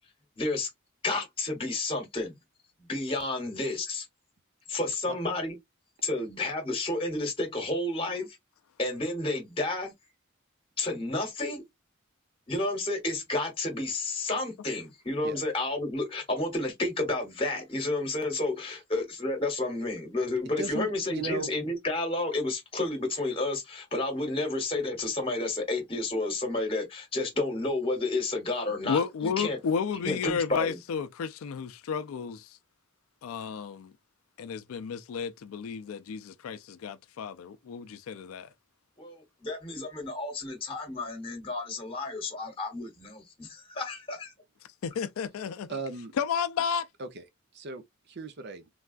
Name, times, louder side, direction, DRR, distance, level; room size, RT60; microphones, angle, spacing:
voice 1, 0.4-0.7 1.0-2.3 2.9-4.1 4.7-5.6 6.0-8.4 8.8-9.9 10.8-11.6 12.5-29.6 30.0-30.8 39.0-44.3, left 2 dB, 25° left, 1.1 m, -31 dB
voice 2, 20.6-21.5 45.7-46.1 47.0-47.2 47.5-48.7, right 4 dB, 55° right, 0.6 m, -37 dB
voice 3, 28.9-32.6 33.2-33.9 34.4-38.5 44.8-45.7 46.1-46.9, left 6 dB, 85° left, 0.4 m, -32 dB
3.4 x 2.3 x 2.4 m
head